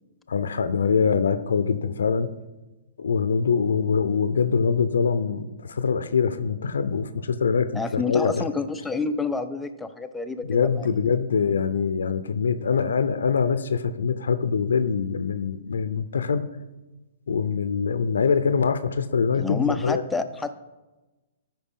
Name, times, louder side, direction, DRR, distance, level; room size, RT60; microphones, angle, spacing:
voice 1, 0.3-2.3 3.0-8.5 10.4-16.5 17.3-20.0, left 6 dB, 80° left, 12 dB, 0.6 m, -24 dB
voice 2, 7.7-10.9 19.3-20.5, left 4 dB, 5° left, 8 dB, 0.6 m, -28 dB
13.0 x 5.6 x 3.7 m, 1.1 s
hypercardioid pair, 130°, 0 cm